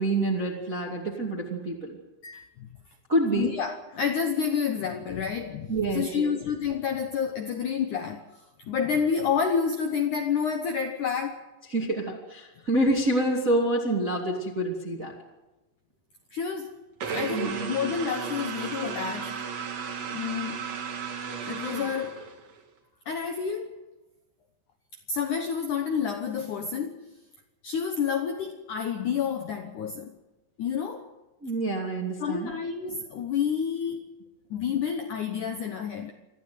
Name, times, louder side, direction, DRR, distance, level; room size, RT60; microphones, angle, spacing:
voice 1, 0.0-2.0 3.1-3.5 5.7-6.4 11.7-15.1 17.3-17.8 31.4-32.5, right 1 dB, 25° right, 2.1 m, -27 dB
voice 2, 2.2-2.7 3.3-11.4 16.3-16.8 17.1-19.4 20.1-20.6 21.5-22.3 23.1-23.8 25.1-27.2 27.6-30.2 30.6-31.2 32.2-34.1 34.5-36.1, left 7 dB, 80° left, 1.8 m, -29 dB
sound 1, 17.0-22.6, right 6 dB, 50° right, 2.1 m, -34 dB
24.0 x 14.5 x 9.5 m
omnidirectional pair, 5.4 m